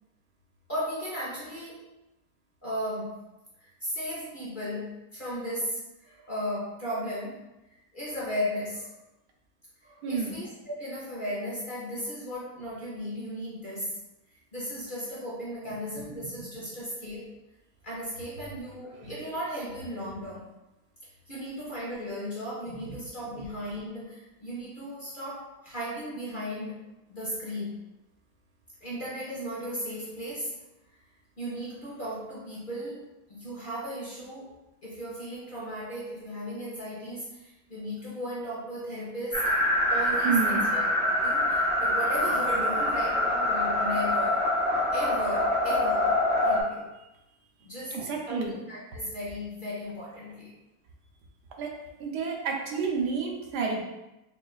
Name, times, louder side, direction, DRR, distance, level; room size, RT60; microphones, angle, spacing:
voice 1, 0.7-1.8 2.6-3.2 3.6-7.5 7.9-9.0 9.8-14.0 14.5-17.3 17.8-20.5 21.0-26.8 27.1-27.8 28.8-30.6 31.4-34.6 34.8-39.4 39.9-44.5 44.9-46.1 46.4-46.9 47.6-50.5, equal, 40° left, -7 dB, 0.7 m, -36 dB
voice 2, 10.0-10.4 40.2-40.7 47.9-48.5 51.6-51.7 52.0-53.8, right 5 dB, 85° right, 0 dB, 1.3 m, -29 dB
sound 1, 39.3-46.6, left 1 dB, 10° right, 0.6 m, -25 dB
5.7 x 2.4 x 2.3 m, 0.97 s
omnidirectional pair, 1.7 m